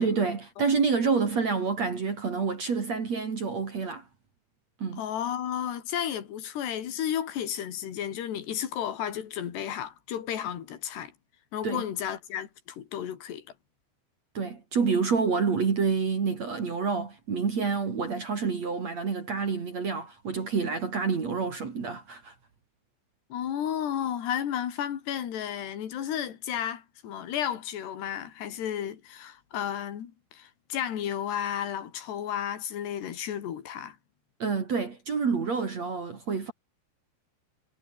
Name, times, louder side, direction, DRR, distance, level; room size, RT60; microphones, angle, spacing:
voice 1, 0.0-4.0 4.8-5.0 11.6-11.8 14.4-22.3 34.4-36.5, right 5 dB, 40° right, 3.5 m, -28 dB
voice 2, 5.0-11.1 11.5-13.4 23.3-34.0, left 10 dB, 60° left, 4.5 m, -33 dB
omnidirectional pair, 5.6 m